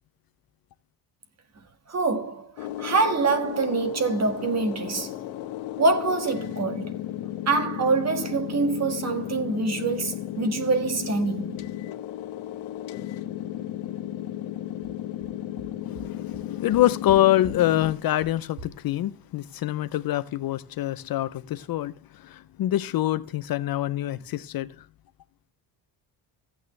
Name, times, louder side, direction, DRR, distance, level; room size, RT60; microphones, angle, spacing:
voice 1, 1.9-5.1 5.8-6.9 7.5-11.6, right 3 dB, 35° right, 1.8 m, -25 dB
sound 1, 2.6-17.9, left 12 dB, 75° left, 1.3 m, -34 dB
sound 2, 14.5-14.6 14.8-14.9 15.2-15.3 15.6-15.7 15.9-16.0 16.3-16.4 16.7-17.1 17.4-17.5 17.8-17.9 18.2-18.3 18.6-18.7, right 3 dB, 70° right, 3.1 m, -41 dB
voice 2, 15.9-24.9, left 14 dB, 50° left, 0.5 m, -25 dB
15.0 x 9.1 x 3.2 m
cardioid pair, 165°, 46 cm